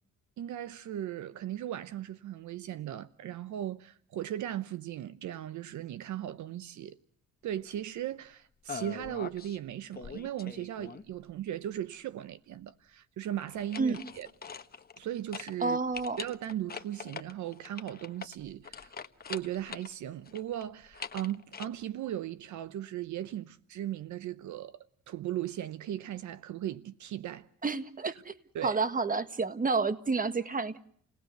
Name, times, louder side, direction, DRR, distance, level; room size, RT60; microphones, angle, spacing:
voice 1, 0.4-7.0 7.4-14.3 15.0-15.8 16.2-18.9 19.3-27.5 28.5-28.8, right 11 dB, 70° right, 0.9 m, -37 dB
sound 1, 8.7-9.6 9.9-11.2 13.4-15.1 15.3-15.5 15.9-19.9 20.2-21.7, left 6 dB, 30° left, 1.3 m, -43 dB
voice 2, 15.6-16.2 27.6-28.4 28.6-30.8, right 4 dB, 25° right, 1.7 m, -30 dB
29.5 x 18.5 x 6.7 m
cardioid pair, 90°, 30 cm